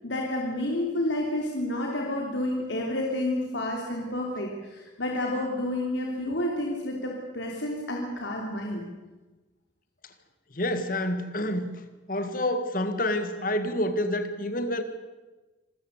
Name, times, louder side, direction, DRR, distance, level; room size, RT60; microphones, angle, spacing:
voice 1, 0.0-8.9, left 1 dB, 75° left, 0 dB, 3.2 m, -30 dB
voice 2, 10.5-11.8 12.1-14.8, left 1 dB, 45° left, 9 dB, 1.9 m, -28 dB
26.0 x 15.0 x 8.1 m, 1.2 s
head